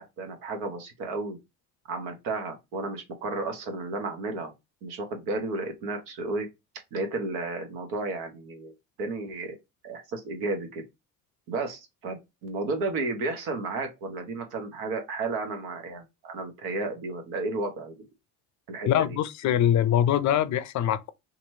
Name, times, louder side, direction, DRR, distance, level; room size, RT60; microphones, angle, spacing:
voice 1, 0.0-1.4 1.9-4.5 4.8-6.5 6.9-8.7 9.0-9.6 9.8-10.8 11.5-18.0 18.7-19.2, right 3 dB, 80° right, 1.0 m, -33 dB
voice 2, 18.9-21.1, left 10 dB, 50° left, 0.5 m, -23 dB
2.9 x 2.5 x 2.7 m
hypercardioid pair, 65°, 37 cm